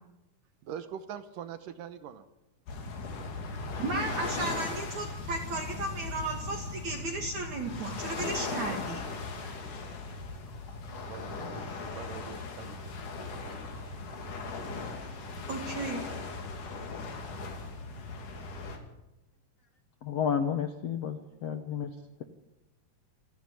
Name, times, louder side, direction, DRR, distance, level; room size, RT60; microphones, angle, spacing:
voice 1, 0.6-2.2 11.1-11.6 11.9-12.9, right 8 dB, 70° right, 11 dB, 2.3 m, -43 dB
sound 1, 2.7-18.8, left 3 dB, 55° left, 3.8 m, -38 dB
voice 2, 3.8-9.0 15.5-16.1, right 2 dB, 50° right, 1 dB, 3.2 m, -34 dB
voice 3, 20.0-21.9, left 7 dB, 85° left, 7 dB, 1.4 m, -31 dB
28.5 x 10.0 x 9.8 m, 0.95 s
omnidirectional pair, 4.6 m